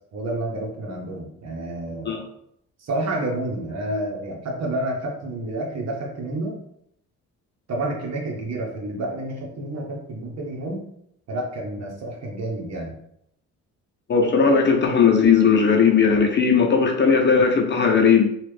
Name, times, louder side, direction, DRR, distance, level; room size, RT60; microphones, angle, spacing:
voice 1, 0.1-2.2 2.8-6.5 7.7-10.8 11.3-12.9, right 1 dB, 60° right, -1 dB, 1.1 m, -29 dB
voice 2, 14.1-18.3, left 6 dB, 35° left, 2 dB, 0.7 m, -17 dB
3.0 x 2.5 x 3.3 m, 0.73 s
cardioid pair, 90°, 30 cm